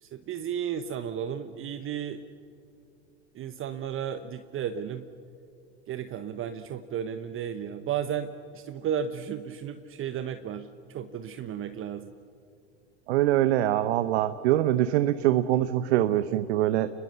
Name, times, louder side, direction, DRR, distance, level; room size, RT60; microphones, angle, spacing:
voice 1, 0.0-2.2 3.3-5.1 5.9-12.1, right 8 dB, 40° right, 10 dB, 1.1 m, -34 dB
voice 2, 13.1-16.9, right 13 dB, 70° right, 12 dB, 0.9 m, -24 dB
29.5 x 21.5 x 6.7 m, 2.5 s
hypercardioid pair, 80°, 34 cm